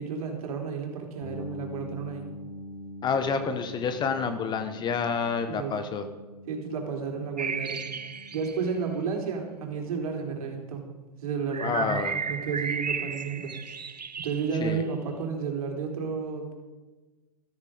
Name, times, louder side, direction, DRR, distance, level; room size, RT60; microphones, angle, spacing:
voice 1, 0.0-2.3 5.5-5.7 6.5-7.8 8.3-10.8 11.2-12.0 12.3-13.6 14.2-16.5, right 6 dB, 60° right, 1 dB, 4.0 m, -32 dB
sound 1, 1.2-10.9, left 1 dB, 85° left, 2.8 m, -44 dB
voice 2, 3.0-6.0 11.6-12.3 14.6-14.8, left 5 dB, 20° left, 9 dB, 1.1 m, -28 dB
sound 2, 7.4-8.7 11.5-14.7, right 5 dB, 85° right, 0.9 m, -34 dB
14.0 x 14.0 x 5.1 m, 1.2 s
hypercardioid pair, 115°, 21 cm